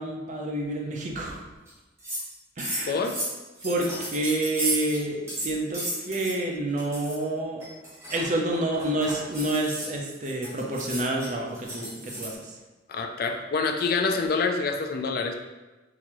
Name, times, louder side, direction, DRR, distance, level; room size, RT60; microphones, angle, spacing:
voice 1, 0.0-1.4 2.6-3.0 3.6-7.7 8.1-12.5, right 1 dB, 40° right, 0 dB, 0.6 m, -29 dB
sound 1, 1.7-1.8 2.0-2.3 2.6-5.0 5.3-6.4 6.8-7.2 7.6-12.3, right 1 dB, 15° right, 0.9 m, -34 dB
voice 2, 2.8-3.1 12.9-15.3, left 4 dB, 55° left, 4 dB, 0.4 m, -26 dB
3.8 x 2.8 x 3.0 m, 1.2 s
head